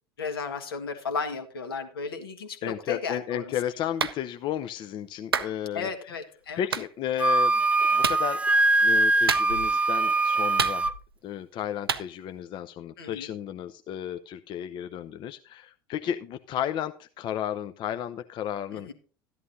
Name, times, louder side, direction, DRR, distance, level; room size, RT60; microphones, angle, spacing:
voice 1, 0.2-3.5 5.7-6.6 13.0-13.3 18.7-18.9, left 5 dB, 75° left, 7 dB, 1.5 m, -34 dB
voice 2, 2.6-5.9 6.6-7.6 7.9-8.4 8.8-10.9 11.2-18.9, left 10 dB, 40° left, 9 dB, 0.6 m, -33 dB
Clapping, 4.0-4.2 5.3-5.5 6.7-6.9 8.0-8.2 9.3-9.7 10.6-11.1 11.9-12.1, right 6 dB, 85° right, 0.6 m, -28 dB
Wind instrument woodwind instrument, 7.2-10.9, right 2 dB, 10° right, 0.4 m, -22 dB
13.0 x 11.0 x 2.6 m, 0.39 s
figure-of-eight pair, 75°, 12 cm